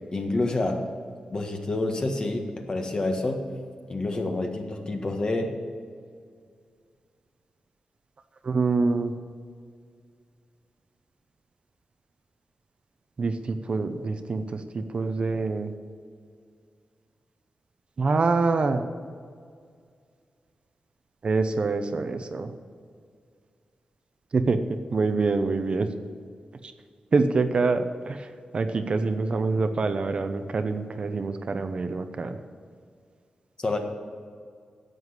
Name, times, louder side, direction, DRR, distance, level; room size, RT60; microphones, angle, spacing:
voice 1, 0.1-0.9 1.3-3.4 3.9-5.6 33.6-33.8, left 2 dB, 35° left, 3 dB, 1.6 m, -28 dB
voice 2, 8.4-9.1 13.2-15.7 18.0-18.8 21.2-22.5 24.3-24.6 24.9-25.9 27.1-28.3 28.5-32.4, right 3 dB, 45° right, 8 dB, 0.8 m, -25 dB
11.0 x 7.8 x 8.2 m, 2.1 s
wide cardioid pair, 105°, 2 cm